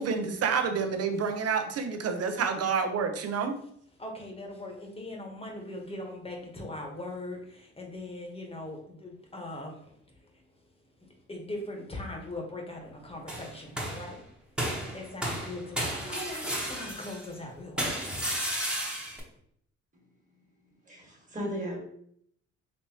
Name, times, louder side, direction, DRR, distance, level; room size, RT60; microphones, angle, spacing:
voice 1, 0.0-3.6, right 5 dB, 55° right, 0.7 m, -28 dB
voice 2, 4.0-10.4 10.8-19.4, left 1 dB, 20° left, 1.2 m, -41 dB
sound 1, 13.3-14.1 14.6-17.3 17.8-19.2, right 1 dB, 5° right, 1.1 m, -33 dB
voice 3, 20.9-21.8, equal, 25° right, 1.7 m, -35 dB
4.2 x 3.1 x 2.9 m
cardioid pair, 90°, 30 cm